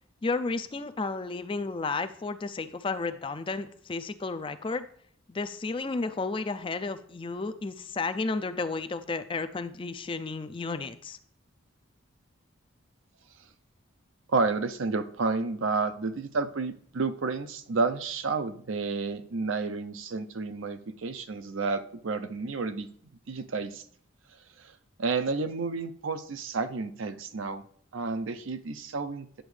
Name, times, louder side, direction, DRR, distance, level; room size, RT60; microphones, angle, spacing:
voice 1, 0.2-4.8 5.3-11.2, left 3 dB, 25° left, 10 dB, 0.4 m, -32 dB
voice 2, 14.3-22.9 23.3-23.8 24.6-24.7 25.0-27.6 27.9-29.3, right 4 dB, 70° right, 9 dB, 0.6 m, -30 dB
10.0 x 7.0 x 3.3 m, 0.62 s
head